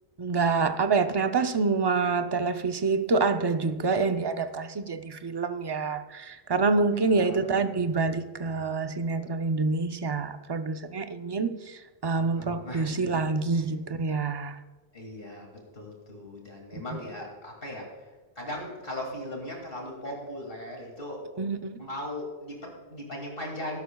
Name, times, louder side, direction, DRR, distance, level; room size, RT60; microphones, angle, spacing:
voice 1, 0.2-14.6 16.9-17.0 21.4-21.8, right 4 dB, 30° right, 8 dB, 0.5 m, -27 dB
voice 2, 7.0-7.4 7.7-8.2 12.1-13.0 13.5-13.6 14.9-21.4 21.8-23.8, left 1 dB, 55° left, 0 dB, 2.7 m, -39 dB
19.0 x 11.5 x 2.3 m, 1.3 s
omnidirectional pair, 1.1 m